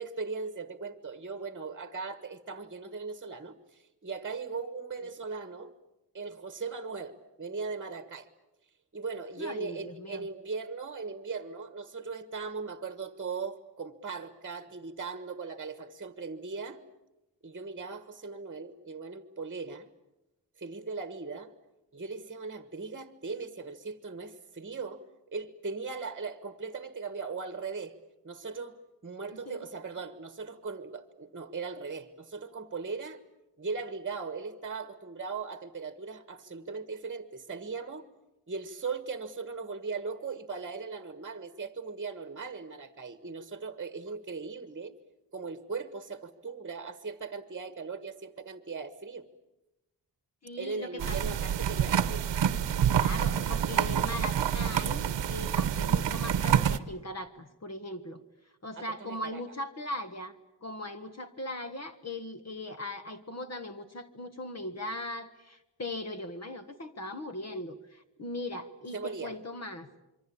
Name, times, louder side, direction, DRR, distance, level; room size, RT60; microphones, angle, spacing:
voice 1, 0.0-5.7 6.1-8.3 8.9-16.8 17.4-19.9 20.6-21.5 21.9-25.0 25.3-27.9 28.2-28.8 29.0-33.2 33.6-38.0 38.5-44.9 45.3-49.3 50.6-52.2 58.7-59.4 68.9-69.3, right 4 dB, 25° right, 11 dB, 1.4 m, -39 dB
voice 2, 9.4-10.3 29.3-29.6 50.4-51.3 52.9-58.2 58.6-60.4 60.6-69.9, left 1 dB, 40° left, 9 dB, 1.5 m, -39 dB
sound 1, 51.0-56.8, right 9 dB, 85° right, 1.1 m, -27 dB
26.5 x 24.0 x 8.6 m, 0.97 s
wide cardioid pair, 135°, 42 cm